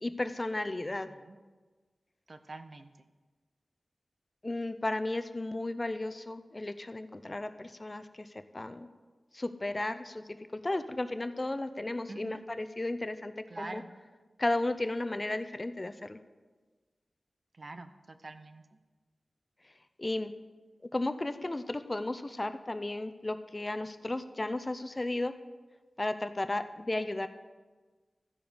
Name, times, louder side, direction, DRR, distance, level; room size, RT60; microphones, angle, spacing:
voice 1, 0.0-1.1 4.4-8.9 9.3-13.8 14.4-16.2 20.0-20.3 20.9-25.3 26.0-27.3, left 2 dB, 30° left, 10 dB, 0.6 m, -34 dB
voice 2, 0.9-1.4 2.3-2.9 12.1-12.4 13.5-13.9 17.6-18.6, right 2 dB, 50° right, 8 dB, 0.6 m, -45 dB
13.5 x 5.0 x 5.1 m, 1.3 s
wide cardioid pair, 65°, 0 cm